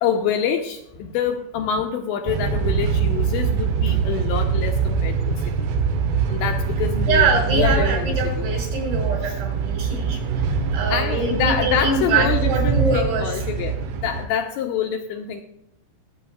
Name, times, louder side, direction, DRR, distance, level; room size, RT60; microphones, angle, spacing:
voice 1, 0.0-5.4 6.3-7.3 7.5-8.5 9.2-9.4 10.9-15.4, left 8 dB, 80° left, 3 dB, 2.7 m, -26 dB
sound 1, 2.3-14.3, right 6 dB, 85° right, 3.6 m, -23 dB
voice 2, 7.1-13.4, right 4 dB, 60° right, 0 dB, 6.9 m, -24 dB
23.0 x 8.4 x 2.4 m, 0.80 s
omnidirectional pair, 5.7 m